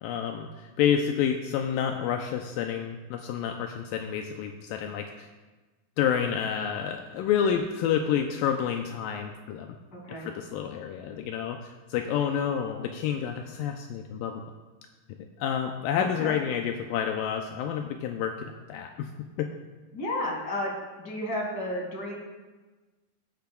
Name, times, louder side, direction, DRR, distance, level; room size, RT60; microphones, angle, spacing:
voice 1, 0.0-5.3 6.0-9.8 10.3-14.4 15.4-19.1 19.4-19.5, left 8 dB, 85° left, 4 dB, 2.0 m, -29 dB
voice 2, 9.9-10.3 12.5-13.1 15.9-16.4 19.9-22.2, left 1 dB, 30° left, -2 dB, 2.4 m, -33 dB
15.5 x 10.5 x 2.3 m, 1.2 s
omnidirectional pair, 4.5 m